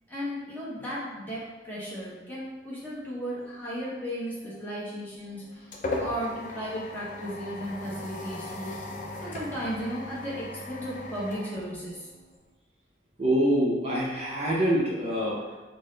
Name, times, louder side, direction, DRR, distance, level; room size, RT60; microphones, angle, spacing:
voice 1, 0.1-8.7 9.2-12.1, equal, 10° left, -8 dB, 0.9 m, -35 dB
sound 1, 5.0-12.4, left 2 dB, 45° left, 0.4 m, -38 dB
voice 2, 13.2-15.6, equal, 35° right, -6 dB, 0.6 m, -25 dB
3.7 x 2.1 x 3.8 m, 1.2 s
head